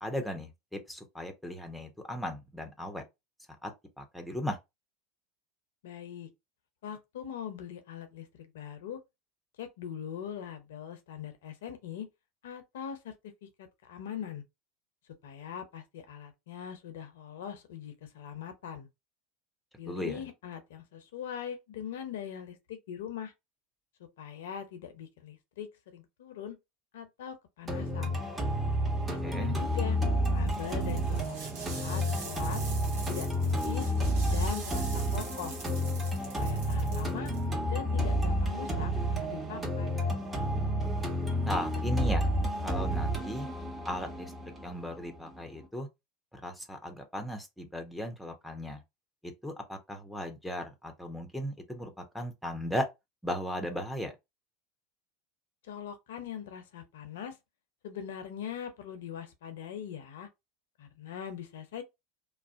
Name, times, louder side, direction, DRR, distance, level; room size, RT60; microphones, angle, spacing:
voice 1, 0.0-3.0 3.6-4.6 19.8-20.2 29.2-29.6 41.5-42.3 42.6-43.5 43.8-44.3 44.6-45.9 46.3-48.8 49.2-52.9 53.2-54.1, equal, ahead, 0.7 m, -36 dB
voice 2, 5.8-6.3 6.8-9.0 9.6-12.1 12.4-13.1 13.4-14.4 15.2-18.9 19.8-23.3 24.2-26.6 26.9-28.2 29.1-30.0 30.3-32.6 33.1-33.9 34.3-35.6 36.4-37.3 37.7-38.9 39.2-39.9 55.6-57.4 57.8-60.3 60.8-61.8, left 8 dB, 70° left, 0.5 m, -41 dB
sound 1, 27.7-45.7, equal, 15° right, 1.1 m, -30 dB
sound 2, 30.2-37.5, right 4 dB, 65° right, 0.9 m, -45 dB
2.4 x 2.1 x 2.5 m
hypercardioid pair, 80°, 0 cm